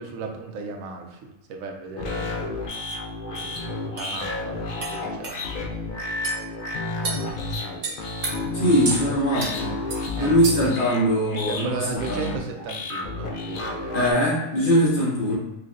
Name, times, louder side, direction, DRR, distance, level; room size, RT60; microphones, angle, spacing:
voice 1, 0.0-2.5 3.2-5.7 6.8-7.9 10.2-10.4 11.5-14.0, right 4 dB, 75° right, 2 dB, 1.0 m, -36 dB
sound 1, 2.0-14.1, left 2 dB, 90° left, 0.4 m, -31 dB
sound 2, 3.4-3.5 4.0-4.1 4.8-4.9 5.2-5.4 6.2-6.4 7.0-7.2 7.8-8.3 8.8-9.0 9.4-9.5 9.9-10.0 10.4-10.7, right 4 dB, 50° right, 0.7 m, -30 dB
voice 2, 8.5-9.8 10.2-11.8 12.1-12.3 13.9-15.3, equal, 40° left, -7 dB, 1.2 m, -21 dB
4.7 x 2.3 x 2.5 m, 1.0 s
omnidirectional pair, 1.5 m